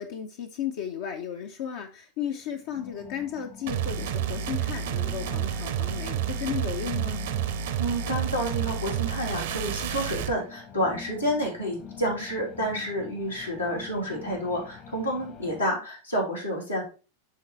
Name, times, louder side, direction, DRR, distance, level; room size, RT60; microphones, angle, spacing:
voice 1, 0.0-7.2, left 8 dB, 50° left, 4 dB, 0.7 m, -34 dB
sound 1, 2.5-15.6, left 6 dB, 35° left, 1.1 m, -45 dB
sound 2, 3.7-10.4, right 9 dB, 55° right, 0.8 m, -30 dB
voice 2, 7.8-16.8, equal, 85° left, -4 dB, 3.2 m, -29 dB
11.5 x 4.0 x 3.1 m, 0.33 s
figure-of-eight pair, 90°, 0 cm